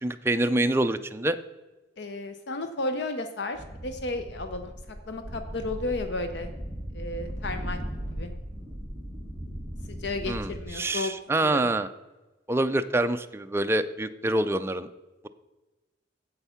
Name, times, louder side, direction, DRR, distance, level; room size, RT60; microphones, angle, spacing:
voice 1, 0.0-1.4 10.3-11.9 12.5-14.9, right 1 dB, 15° right, 10 dB, 0.4 m, -26 dB
voice 2, 2.0-4.8 5.1-6.5 6.9-7.8 8.1-8.3 9.9-11.2 11.4-11.7, left 2 dB, 65° left, 8 dB, 0.7 m, -33 dB
sound 1, 3.5-10.6, equal, 5° left, 1.7 m, -37 dB
8.1 x 8.1 x 5.7 m, 1.2 s
head